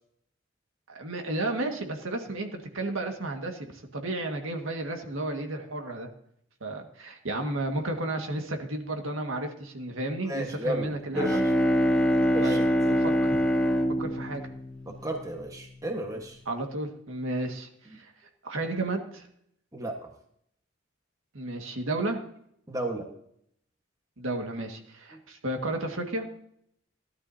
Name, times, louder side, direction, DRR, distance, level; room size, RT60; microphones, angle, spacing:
voice 1, 0.9-6.1 6.6-11.4 12.4-13.4 14.0-14.5 16.5-18.1 18.4-19.3 21.3-22.2 24.2-26.3, right 2 dB, 85° right, 4 dB, 1.8 m, -33 dB
voice 2, 10.2-11.4 12.3-12.6 15.0-16.4 19.7-20.1 22.7-23.1 25.1-25.2, right 1 dB, 15° right, 3 dB, 1.4 m, -33 dB
Bowed string instrument, 10.9-15.7, equal, 5° left, 1.2 m, -25 dB
17.0 x 12.0 x 2.8 m, 0.70 s
head